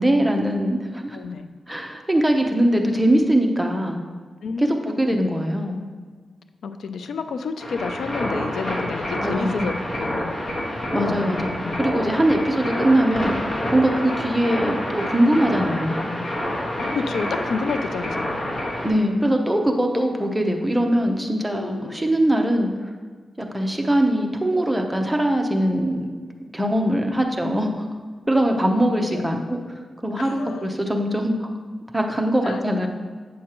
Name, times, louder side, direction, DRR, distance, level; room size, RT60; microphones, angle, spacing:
voice 1, 0.0-1.2 1.7-4.0 4.6-5.8 9.2-9.7 10.9-16.1 18.8-22.7 23.4-26.1 26.5-27.7 28.3-29.6 30.0-31.3 31.9-32.9, right 1 dB, 10° right, 2 dB, 0.8 m, -21 dB
voice 2, 1.1-1.5 2.8-3.0 4.4-5.2 6.6-11.8 16.8-18.6 21.5-22.2 26.7-27.7 29.0-29.4 30.2-30.7 32.4-32.9, left 4 dB, 85° left, 9 dB, 0.3 m, -31 dB
sound 1, 7.6-18.9, left 1 dB, 55° left, 1.5 m, -27 dB
8.4 x 6.3 x 2.9 m, 1.5 s
wide cardioid pair, 105°, 0 cm